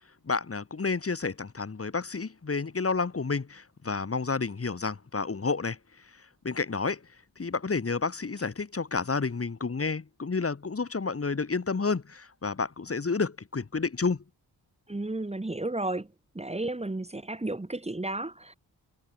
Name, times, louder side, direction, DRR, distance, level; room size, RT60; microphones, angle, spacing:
voice 1, 0.2-5.8 6.4-7.0 7.4-14.2, left 4 dB, 35° left, 3.9 m, -30 dB
voice 2, 14.9-16.1 16.3-18.5, right 2 dB, 15° right, 3.0 m, -33 dB
wide cardioid pair, 125°, 39 cm